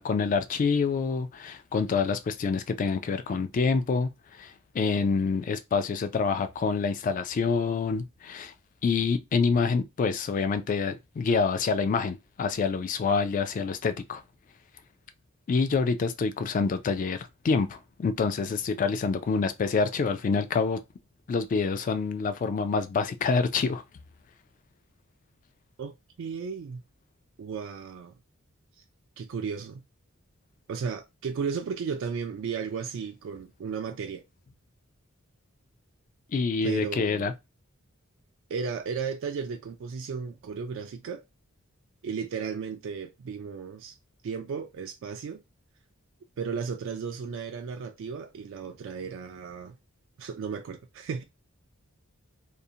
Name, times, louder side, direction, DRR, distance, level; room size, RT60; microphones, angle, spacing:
voice 1, 0.0-4.1 4.4-8.5 8.8-14.2 15.5-20.8 21.3-23.8 36.3-37.3, left 5 dB, 40° left, 0.3 m, -27 dB
voice 2, 25.8-26.8 27.4-28.1 29.2-29.8 30.7-34.2 36.6-37.3 38.5-41.2 42.0-43.9 44.2-45.4 46.4-49.8 50.2-51.2, right 6 dB, 65° right, 0.3 m, -34 dB
2.5 x 2.1 x 2.7 m
head